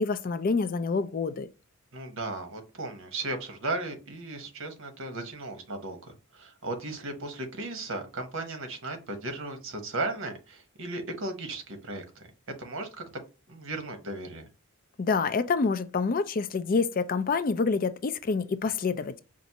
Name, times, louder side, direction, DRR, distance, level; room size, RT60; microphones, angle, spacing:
voice 1, 0.0-1.5 15.0-19.2, left 4 dB, 45° left, 0.4 m, -27 dB
voice 2, 1.9-12.3 12.6-13.0 13.5-14.5, right 2 dB, 65° right, 1.1 m, -36 dB
5.2 x 2.5 x 2.8 m
head